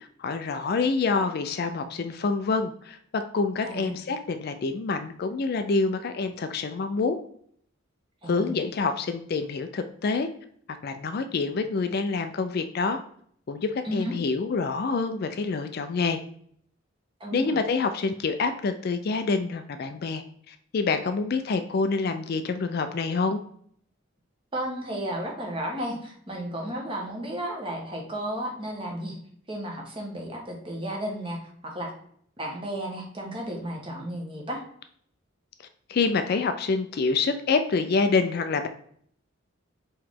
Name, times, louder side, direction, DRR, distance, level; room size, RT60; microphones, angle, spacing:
voice 1, 0.2-7.2 8.2-10.3 10.8-13.0 13.5-16.2 17.3-23.4 35.9-38.7, left 4 dB, 50° left, 8 dB, 0.4 m, -27 dB
voice 2, 3.6-4.0 8.2-8.6 13.8-14.1 17.2-17.6 24.5-29.2 29.5-31.9 32.4-34.6, right 1 dB, 25° right, 0 dB, 1.2 m, -33 dB
4.8 x 3.1 x 3.6 m, 0.64 s
head